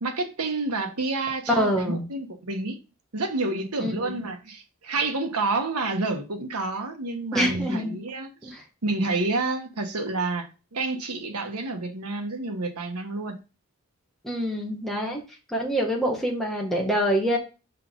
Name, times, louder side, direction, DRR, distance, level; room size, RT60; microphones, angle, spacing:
voice 1, 0.0-2.8 3.1-13.4, right 3 dB, 85° right, 1.3 m, -29 dB
voice 2, 1.6-2.0 3.8-4.1 7.3-8.0 8.4-8.6 14.2-15.2 15.5-17.4, equal, ahead, 1.5 m, -25 dB
5.6 x 5.1 x 3.7 m
head